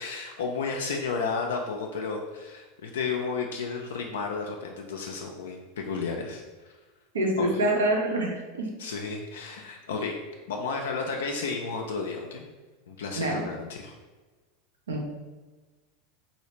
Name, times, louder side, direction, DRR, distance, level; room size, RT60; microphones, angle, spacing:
voice 1, 0.0-6.4 7.4-7.6 8.8-10.2 10.5-12.4 12.9-13.9, left 4 dB, 70° left, 1 dB, 0.3 m, -32 dB
voice 2, 7.1-8.7 13.2-13.4 14.9-15.1, right 1 dB, 75° right, 1 dB, 0.6 m, -26 dB
3.2 x 2.7 x 2.9 m, 1.2 s
figure-of-eight pair, 85°, 0 cm